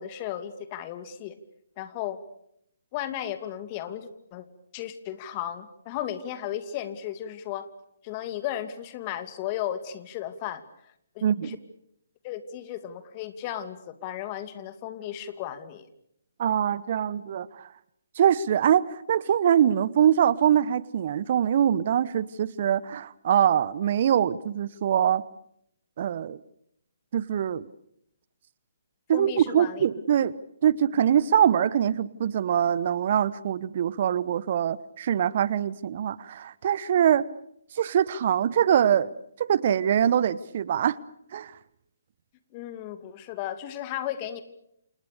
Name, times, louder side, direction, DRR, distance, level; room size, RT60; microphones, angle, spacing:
voice 1, 0.0-1.4 1.8-2.2 2.9-4.5 4.7-7.7 8.0-11.6 12.2-15.9 29.1-29.9 42.5-44.4, left 11 dB, 30° left, 10 dB, 2.6 m, -35 dB
voice 2, 11.2-11.6 16.4-17.7 18.2-25.2 26.0-26.4 27.1-27.7 29.1-30.4 30.6-37.3 37.7-39.1 39.4-41.0 41.3-41.5, right 9 dB, 45° right, 19 dB, 1.0 m, -23 dB
29.5 x 28.0 x 6.8 m, 0.76 s
figure-of-eight pair, 135°, 0 cm